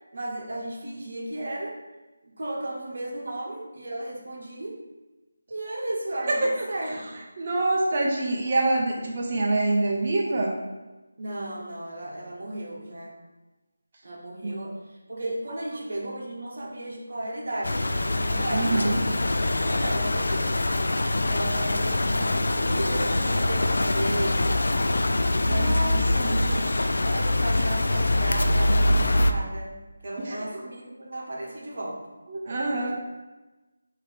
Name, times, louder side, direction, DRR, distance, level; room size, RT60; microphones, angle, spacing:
voice 1, 0.1-1.8 2.2-4.8 5.5-7.0 11.2-13.1 14.0-19.0 19.6-20.5 21.1-24.6 25.5-26.7 27.0-29.8 30.0-32.0 32.7-32.9, right 1 dB, 55° right, -3 dB, 0.9 m, -34 dB
voice 2, 6.2-7.0 7.4-10.6 14.4-14.6 18.5-19.1 25.5-26.4 30.2-30.6 32.3-32.9, right 2 dB, 35° right, -2 dB, 0.5 m, -26 dB
sound 1, 17.6-29.3, left 1 dB, 70° left, 0.4 m, -24 dB
4.0 x 2.7 x 4.8 m, 1.1 s
figure-of-eight pair, 170°, 0 cm